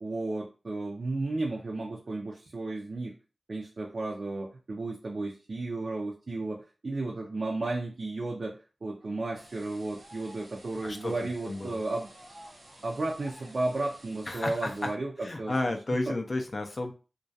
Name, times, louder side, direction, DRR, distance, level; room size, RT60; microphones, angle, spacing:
voice 1, 0.0-3.1 3.5-12.1 12.8-15.5 16.1-16.2, right 2 dB, 55° right, 0 dB, 0.4 m, -33 dB
Cheering, 9.0-14.5, equal, 25° left, 0.9 m, -55 dB
sound 1, 9.3-14.9, right 1 dB, 85° right, 1.0 m, -54 dB
voice 2, 10.8-11.1 11.4-11.8 14.3-14.7 15.2-16.9, left 2 dB, 45° left, 4 dB, 0.3 m, -32 dB
2.2 x 2.2 x 2.6 m, 0.33 s
wide cardioid pair, 100°, 0 cm